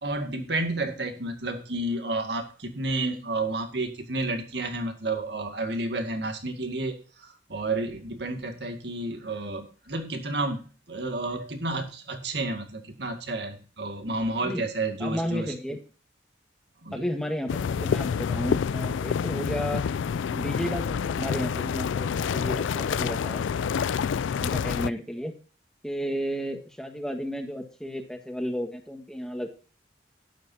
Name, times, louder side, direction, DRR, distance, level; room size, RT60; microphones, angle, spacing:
voice 1, 0.0-15.5 16.8-17.1, right 2 dB, 65° right, 5 dB, 2.1 m, -31 dB
voice 2, 15.0-15.8 16.9-19.8 20.3-23.4 24.4-25.3 25.8-29.5, equal, 5° left, 4 dB, 1.7 m, -33 dB
sound 1, 17.5-24.9, left 6 dB, 90° left, 0.4 m, -28 dB
12.0 x 10.5 x 2.8 m, 0.37 s
head